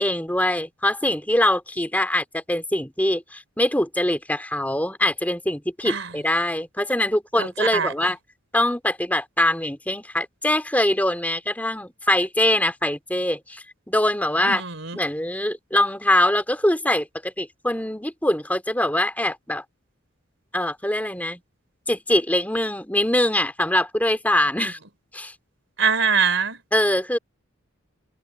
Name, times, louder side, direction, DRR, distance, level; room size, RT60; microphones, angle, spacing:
voice 1, 0.0-8.2 8.5-14.6 14.9-19.6 20.5-21.4 21.9-24.8 25.1-25.3 26.7-27.2, left 1 dB, 10° left, 3.1 m, -23 dB
voice 2, 7.4-7.9 14.4-15.0 24.6-24.7 25.8-26.6, right 5 dB, 65° right, 3.9 m, -23 dB
head